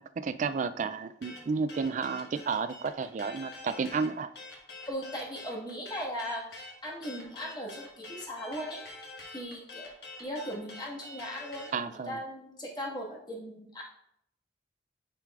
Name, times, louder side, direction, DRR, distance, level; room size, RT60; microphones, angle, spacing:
voice 1, 0.0-4.3 11.7-12.2, right 5 dB, 45° right, 12 dB, 0.3 m, -32 dB
sound 1, 1.2-11.8, left 2 dB, 60° left, 1.5 m, -46 dB
voice 2, 4.9-8.8 9.3-9.9 10.2-13.8, equal, 25° left, -4 dB, 1.6 m, -38 dB
9.9 x 4.7 x 2.4 m, 0.72 s
head